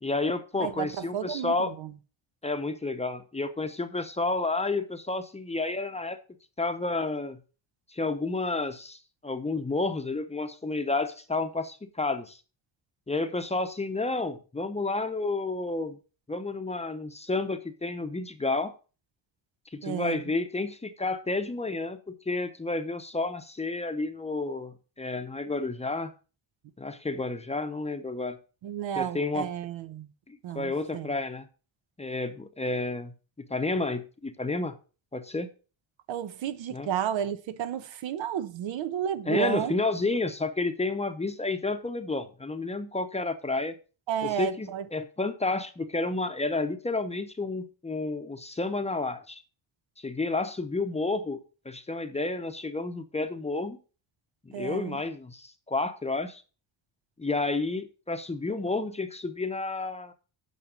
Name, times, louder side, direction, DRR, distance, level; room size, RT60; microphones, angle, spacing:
voice 1, 0.0-1.7 2.4-6.2 6.6-7.4 7.9-9.0 9.2-12.4 13.1-16.0 16.3-18.7 19.7-22.0 22.3-26.1 26.8-28.4 29.0-29.5 30.3-31.5 32.0-34.8 35.1-35.5 36.7-36.9 39.3-43.7 44.2-49.4 50.0-51.4 51.6-53.8 54.5-56.4 57.2-60.1, left 3 dB, 15° left, 0.8 m, -30 dB
voice 2, 0.6-1.9 19.8-20.2 28.6-30.1 30.4-31.1 36.1-39.8 44.1-44.8 54.5-55.0, right 9 dB, 70° right, 0.9 m, -32 dB
8.8 x 5.9 x 5.2 m
cardioid pair, 120°, 46 cm